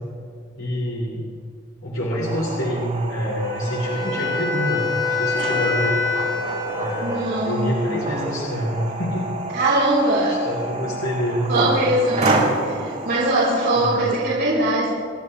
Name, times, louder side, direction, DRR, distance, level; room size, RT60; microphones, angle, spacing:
voice 1, 0.6-1.3 1.8-6.0 6.7-9.4 10.3-11.8 13.7-14.0, equal, 80° left, -5 dB, 3.6 m, -26 dB
sound 1, 2.2-13.9, right 2 dB, 35° right, 4.1 m, -29 dB
Wind instrument woodwind instrument, 3.4-7.5, left 4 dB, 20° left, 3.6 m, -26 dB
voice 2, 7.0-7.9 9.5-10.3 11.5-14.9, right 1 dB, 55° right, -9 dB, 4.0 m, -21 dB
29.0 x 11.5 x 3.3 m, 2.1 s
head